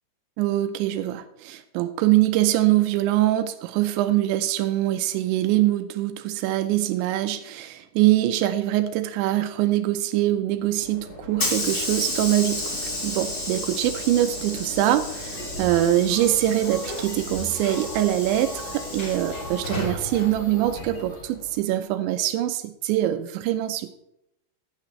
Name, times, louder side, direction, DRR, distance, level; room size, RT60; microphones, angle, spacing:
voice 1, 0.4-12.6 13.0-23.9, right 14 dB, 85° right, 10 dB, 2.8 m, -23 dB
Hiss / Sliding door, 10.7-21.5, left 1 dB, 55° left, 0.7 m, -32 dB
sound 1, 15.3-21.2, left 1 dB, 35° left, 4.0 m, -40 dB
13.5 x 9.8 x 3.2 m, 0.79 s
omnidirectional pair, 5.6 m